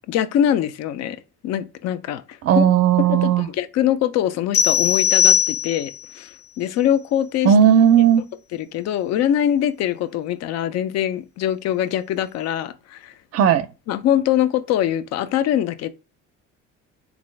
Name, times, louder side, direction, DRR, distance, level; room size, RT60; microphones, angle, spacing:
voice 1, 0.1-1.2 1.4-2.6 3.0-7.5 8.5-13.1 13.9-15.9, left 10 dB, 60° left, 0.5 m, -23 dB
voice 2, 2.4-3.5 7.4-8.2 13.3-13.7, right 9 dB, 55° right, 0.5 m, -15 dB
sound 1, 4.5-6.1, left 9 dB, 85° left, 1.5 m, -18 dB
3.7 x 2.5 x 3.1 m
cardioid pair, 105°, 30 cm